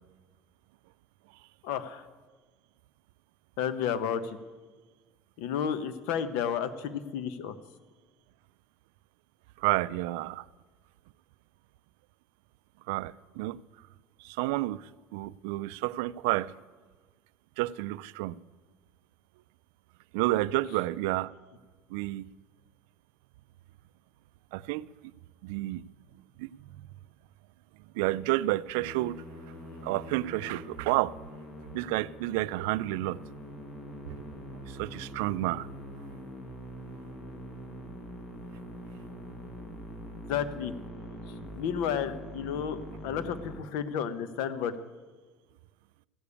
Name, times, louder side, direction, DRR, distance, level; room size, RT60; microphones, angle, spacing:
voice 1, 1.6-2.1 3.6-4.4 5.4-7.5 40.3-40.7 41.6-44.7, left 8 dB, 80° left, 0.9 m, -32 dB
voice 2, 9.6-10.5 12.9-13.6 14.2-16.5 17.6-18.4 20.1-21.3 21.9-22.3 24.5-24.9 25.4-25.8 26.4-26.5 27.9-29.2 29.8-31.1 31.7-33.2 34.5-35.7, right 18 dB, 90° right, 0.3 m, -30 dB
Musical instrument, 28.8-43.6, equal, 35° left, 2.0 m, -44 dB
15.0 x 6.9 x 8.4 m
cardioid pair, 135°, 0 cm